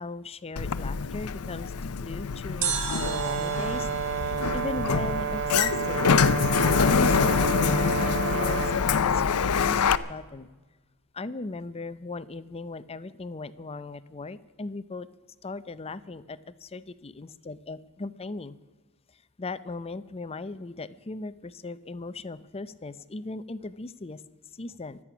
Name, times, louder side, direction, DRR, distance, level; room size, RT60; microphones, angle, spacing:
voice 1, 0.0-6.0 6.5-10.5 11.1-15.1 15.4-18.6 19.1-24.2 24.5-25.0, left 3 dB, 25° left, 15 dB, 0.6 m, -38 dB
Sliding door, 0.6-10.0, left 6 dB, 80° left, 0.6 m, -25 dB
sound 1, 2.6-5.7 5.9-6.0, right 7 dB, 80° right, 1.8 m, -35 dB
Brass instrument, 3.0-8.8, right 8 dB, 55° right, 0.6 m, -31 dB
24.5 x 8.6 x 6.1 m, 1.2 s
head